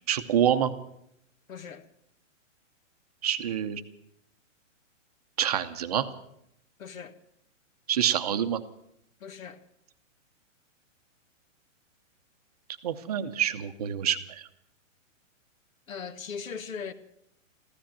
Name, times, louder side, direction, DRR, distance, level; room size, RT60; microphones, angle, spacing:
voice 1, 0.1-0.7 3.2-3.8 5.4-6.1 7.9-8.6 12.8-14.5, right 9 dB, 30° right, 0.7 m, -27 dB
voice 2, 1.5-1.9 6.8-7.2 9.2-9.6 15.9-16.9, left 6 dB, 85° left, 1.6 m, -39 dB
15.0 x 13.0 x 7.3 m
hypercardioid pair, 170°, 39 cm